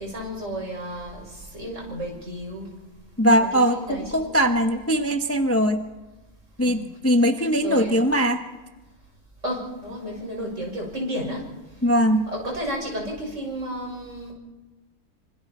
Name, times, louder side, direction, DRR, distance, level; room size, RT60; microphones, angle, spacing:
voice 1, 0.0-2.7 3.4-4.4 4.6-4.9 6.6-6.9 7.6-8.0 9.4-11.5 12.3-14.3, equal, 55° right, -1 dB, 6.4 m, -32 dB
voice 2, 3.2-5.8 6.6-8.4 11.8-12.2, equal, 10° left, 6 dB, 0.9 m, -21 dB
26.0 x 25.5 x 4.4 m, 1.2 s
omnidirectional pair, 1.5 m